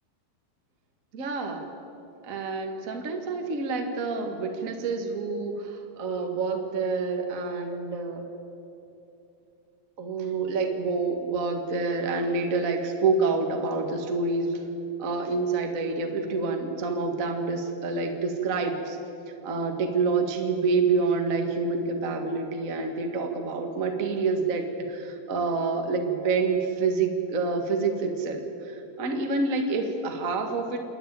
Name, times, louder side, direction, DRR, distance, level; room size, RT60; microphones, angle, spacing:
voice 1, 1.1-1.7 2.2-8.2 10.0-14.6 15.0-19.0 19.4-30.8, right 4 dB, 40° right, 3 dB, 1.2 m, -27 dB
28.0 x 10.0 x 9.1 m, 2.8 s
omnidirectional pair, 4.3 m